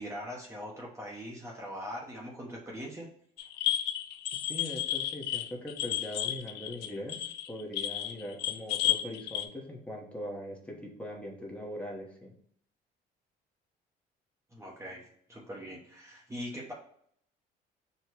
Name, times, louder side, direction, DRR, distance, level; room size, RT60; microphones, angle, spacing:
voice 1, 0.0-3.1 14.5-16.7, equal, 15° right, -2 dB, 0.8 m, -41 dB
sound 1, 3.4-9.5, left 13 dB, 85° left, 0.4 m, -32 dB
voice 2, 4.5-12.3, left 1 dB, 5° left, -1 dB, 1.0 m, -41 dB
4.3 x 2.2 x 4.5 m, 0.66 s
cardioid pair, 110°, 17 cm